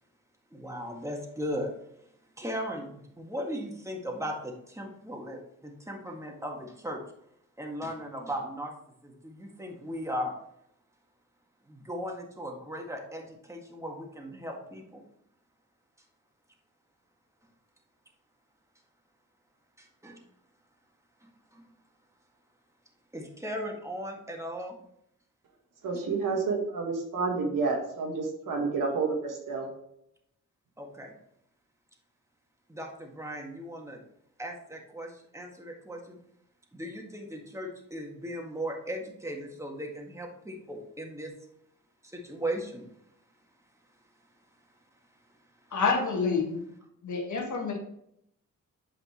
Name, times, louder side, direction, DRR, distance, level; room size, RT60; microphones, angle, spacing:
voice 1, 0.5-1.7 2.4-7.0 7.6-8.7 9.0-10.3 11.7-15.0 19.8-20.2 21.2-21.6 23.1-24.8 30.8-31.1 32.7-34.0 34.4-36.2 36.7-41.3 42.0-42.8, equal, 10° right, 1 dB, 1.7 m, -37 dB
voice 2, 25.8-29.7, right 4 dB, 85° right, 2 dB, 1.8 m, -29 dB
voice 3, 45.7-46.7 47.0-47.8, left 4 dB, 65° left, 2 dB, 1.7 m, -28 dB
8.1 x 5.2 x 3.1 m, 0.75 s
cardioid pair, 85°, 32 cm